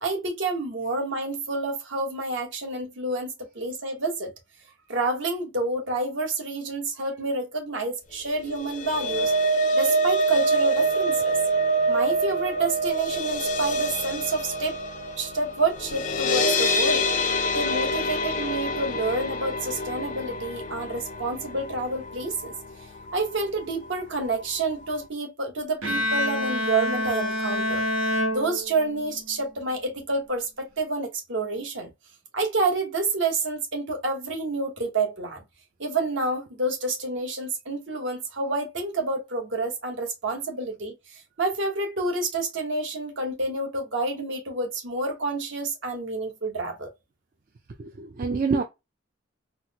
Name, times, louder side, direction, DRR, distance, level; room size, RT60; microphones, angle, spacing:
voice 1, 0.0-4.3 4.9-9.3 9.7-11.4 11.9-14.8 15.2-17.1 17.5-22.5 23.1-27.8 28.3-31.9 32.3-35.4 35.8-46.9, right 2 dB, 65° right, 1.1 m, -28 dB
sound 1, 8.5-22.7 23.1-23.3 23.6-23.7, right 1 dB, 35° left, 0.4 m, -26 dB
Bowed string instrument, 25.8-29.2, left 1 dB, 85° right, 0.9 m, -27 dB
voice 2, 47.8-48.6, right 4 dB, 40° right, 0.4 m, -26 dB
4.0 x 2.1 x 2.8 m
head